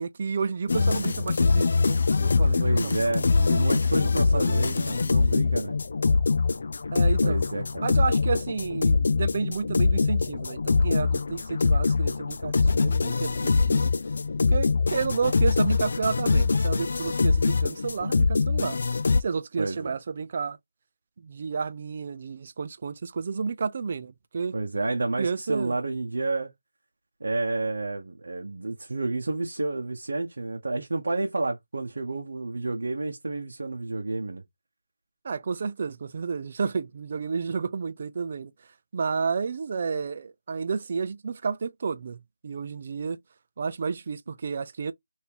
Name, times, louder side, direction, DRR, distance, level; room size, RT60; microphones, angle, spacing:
voice 1, 0.0-3.6 4.3-5.0 6.9-7.4 7.8-13.9 14.5-18.8 19.2-20.6 21.2-24.5 25.2-25.7 35.2-38.5 38.9-43.2 43.6-44.9, right 5 dB, 40° right, 0.4 m, -31 dB
sound 1, 0.7-19.2, left 4 dB, 50° left, 0.3 m, -23 dB
voice 2, 2.6-5.8 7.2-7.9 19.6-19.9 24.5-26.5 27.2-34.4, right 2 dB, 70° right, 0.8 m, -30 dB
3.4 x 2.7 x 2.8 m
figure-of-eight pair, 165°, 0 cm